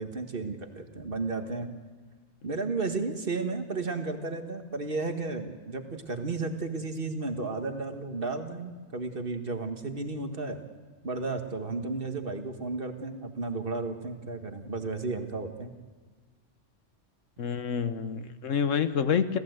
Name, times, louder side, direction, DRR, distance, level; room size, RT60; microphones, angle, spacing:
voice 1, 0.0-1.7 2.4-10.6 11.0-15.7, right 3 dB, 45° right, 6 dB, 1.8 m, -33 dB
voice 2, 17.4-19.4, left 7 dB, 80° left, 11 dB, 1.4 m, -27 dB
29.5 x 14.5 x 8.0 m, 1.5 s
omnidirectional pair, 1.3 m